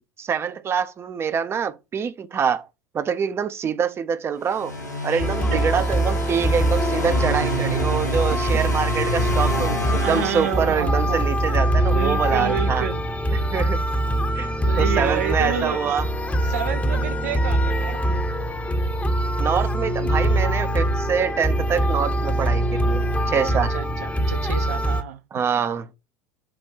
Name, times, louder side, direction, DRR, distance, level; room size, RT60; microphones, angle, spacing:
voice 1, 0.2-2.7 2.9-4.7 5.0-12.9 13.3-13.9 14.4-14.5 14.8-16.1 16.4-16.5 19.4-23.7 25.3-25.9, right 7 dB, 25° right, 0.7 m, -25 dB
sound 1, 4.4-11.1, equal, 85° left, 2.0 m, -30 dB
voice 2, 5.1-5.8 8.3-8.4 10.0-11.3 11.8-13.0 14.6-15.9 16.5-18.3 23.5-25.4, right 10 dB, 65° right, 0.8 m, -30 dB
sound 2, 5.2-25.0, right 1 dB, 15° left, 1.0 m, -23 dB
7.8 x 2.6 x 5.5 m
figure-of-eight pair, 75°, 9 cm